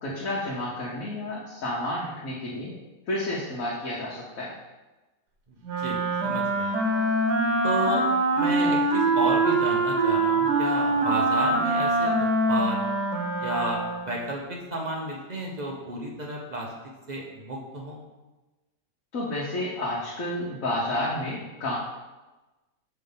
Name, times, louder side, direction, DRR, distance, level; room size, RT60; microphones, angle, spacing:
voice 1, 0.0-2.7 3.1-4.5 19.1-21.8, left 1 dB, 55° left, -6 dB, 1.3 m, -30 dB
voice 2, 5.5-6.7 7.6-8.1 8.3-12.8 13.4-16.7 17.1-18.0, right 1 dB, 40° right, -2 dB, 0.7 m, -32 dB
Wind instrument woodwind instrument, 5.6-14.2, right 2 dB, 85° right, 1.4 m, -24 dB
5.4 x 3.4 x 5.5 m, 1.1 s
omnidirectional pair, 1.7 m